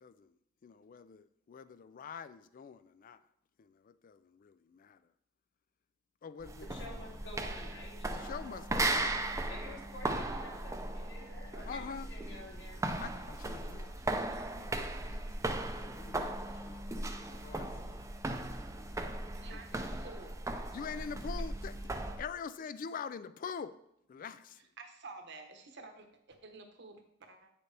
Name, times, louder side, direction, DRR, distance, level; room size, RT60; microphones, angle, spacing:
voice 1, 0.0-0.3 0.6-3.2 3.6-5.0 6.2-6.7 8.1-9.2 11.7-12.1 13.0-14.7 15.0-17.1 17.4-18.0 19.5-19.6 20.7-23.7 24.1-24.6, left 6 dB, 45° left, 14 dB, 0.3 m, -45 dB
sound 1, 6.4-22.2, right 2 dB, 15° right, 0.6 m, -37 dB
voice 2, 6.6-8.8 9.5-12.8, left 1 dB, 65° left, -3 dB, 2.6 m, -50 dB
voice 3, 19.3-20.4 21.0-21.1 24.8-27.5, right 3 dB, 60° right, 5 dB, 1.2 m, -51 dB
8.9 x 6.8 x 3.3 m, 0.76 s
head